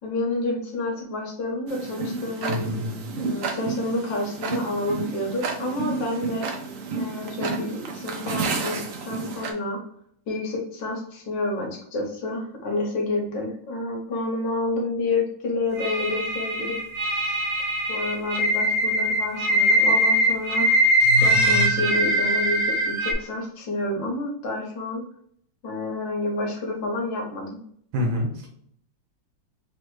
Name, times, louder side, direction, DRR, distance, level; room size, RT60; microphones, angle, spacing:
voice 1, 0.0-2.7 3.2-6.5 7.0-9.8 10.3-16.8 17.1-17.4 17.9-25.0 25.6-27.6, left 2 dB, 60° left, -1 dB, 1.8 m, -29 dB
Tick-tock, 1.7-9.5, right 4 dB, 90° right, 0.7 m, -31 dB
voice 2, 2.5-3.0 27.9-28.5, left 1 dB, 70° right, 0 dB, 2.0 m, -27 dB
sound 1, 15.8-23.1, equal, 50° right, 0.8 m, -21 dB
4.0 x 3.1 x 3.1 m, 0.66 s
omnidirectional pair, 2.3 m